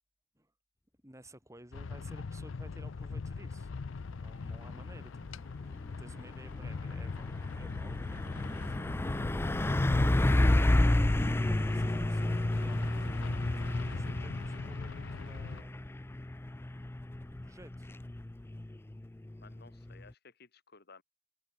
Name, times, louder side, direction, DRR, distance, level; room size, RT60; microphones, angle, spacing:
voice 1, 1.0-3.7 4.1-5.1 5.6-7.2 7.5-8.7 9.7-15.8 17.3-17.9, right 1 dB, 15° right, 7.7 m, -55 dB
sound 1, 1.7-15.6, left 4 dB, 75° left, 0.5 m, -41 dB
Truck, 5.8-20.1, left 1 dB, 10° left, 0.4 m, -31 dB
voice 2, 19.4-21.0, left 4 dB, 55° left, 2.1 m, -57 dB
head